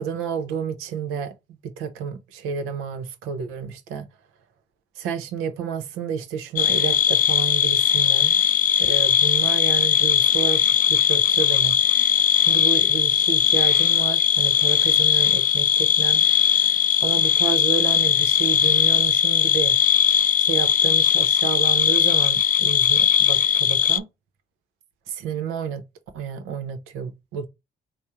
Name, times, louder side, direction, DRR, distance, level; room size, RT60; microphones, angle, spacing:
voice 1, 0.0-1.3 1.6-4.1 5.0-8.4 8.8-11.8 12.5-16.2 17.0-19.8 20.4-24.0 25.1-25.8 26.1-27.5, right 7 dB, 85° right, 0.7 m, -30 dB
sound 1, 6.6-24.0, left 9 dB, 40° left, 0.4 m, -19 dB
3.5 x 2.1 x 4.2 m
supercardioid pair, 60°, 21 cm